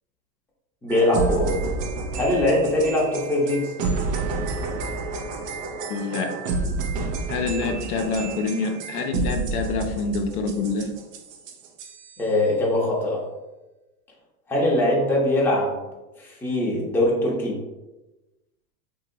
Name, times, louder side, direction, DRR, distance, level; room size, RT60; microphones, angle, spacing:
voice 1, 0.8-1.6 2.1-3.7 12.2-13.3 14.5-15.8 16.2-17.6, left 1 dB, 5° left, -5 dB, 0.6 m, -22 dB
sound 1, 0.9-12.2, right 3 dB, 80° right, 0.6 m, -30 dB
voice 2, 5.9-6.4 7.3-11.0, left 4 dB, 70° left, 4 dB, 0.6 m, -26 dB
2.9 x 2.6 x 2.7 m, 1.1 s
hypercardioid pair, 110°, 46 cm